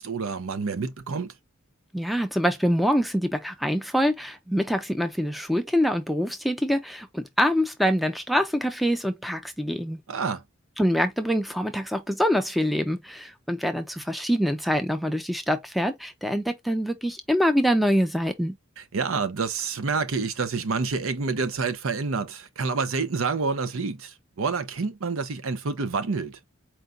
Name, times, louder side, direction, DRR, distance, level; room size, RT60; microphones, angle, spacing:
voice 1, 0.0-1.3 10.1-10.4 18.8-26.4, right 4 dB, 80° right, 0.7 m, -28 dB
voice 2, 1.9-10.0 10.8-18.5, equal, ahead, 0.5 m, -25 dB
4.6 x 2.2 x 3.8 m
head